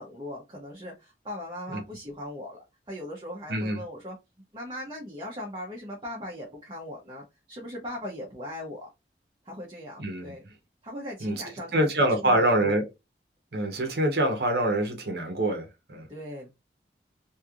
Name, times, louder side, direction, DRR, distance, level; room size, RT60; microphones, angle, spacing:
voice 1, 0.0-4.2 4.5-8.9 9.4-10.4 10.8-12.8 16.1-16.5, left 1 dB, 30° right, 0.9 m, -39 dB
voice 2, 3.5-3.8 10.0-10.3 11.2-11.4 11.7-12.8 13.5-16.1, right 1 dB, 65° right, 0.9 m, -25 dB
3.2 x 2.7 x 2.4 m
head